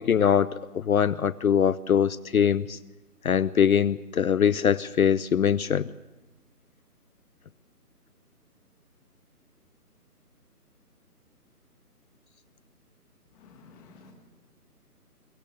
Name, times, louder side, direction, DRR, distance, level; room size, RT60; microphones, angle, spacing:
voice 1, 0.0-2.8 3.2-5.9, left 8 dB, 60° left, 18 dB, 0.6 m, -23 dB
voice 2, 13.3-14.1, left 4 dB, 10° left, 2 dB, 1.5 m, -52 dB
23.0 x 15.5 x 8.7 m, 1.2 s
figure-of-eight pair, 155°, 47 cm